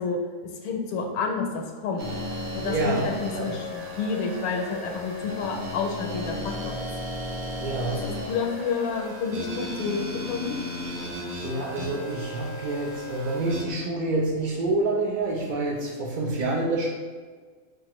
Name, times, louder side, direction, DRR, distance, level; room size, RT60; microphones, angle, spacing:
voice 1, 0.0-2.1 2.5-6.9 8.3-10.6, left 5 dB, 80° left, 2 dB, 1.0 m, -30 dB
sound 1, 2.0-13.6, left 1 dB, 55° right, 1.1 m, -35 dB
voice 2, 2.7-3.1 3.3-3.5 7.6-8.0 11.4-16.9, right 2 dB, 80° right, -3 dB, 0.4 m, -27 dB
4.6 x 2.4 x 3.0 m, 1.5 s
omnidirectional pair, 1.5 m